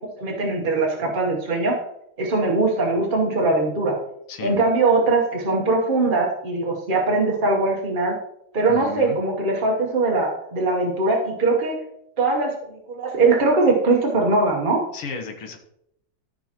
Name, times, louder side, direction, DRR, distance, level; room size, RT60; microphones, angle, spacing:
voice 1, 0.2-1.8 2.2-4.0 4.4-8.1 8.5-11.8 12.2-14.8, right 3 dB, 35° right, -1 dB, 0.8 m, -21 dB
voice 2, 4.3-4.6 8.7-9.2 14.9-15.6, left 5 dB, 90° left, 4 dB, 2.1 m, -33 dB
14.0 x 5.4 x 2.9 m, 0.76 s
omnidirectional pair, 2.4 m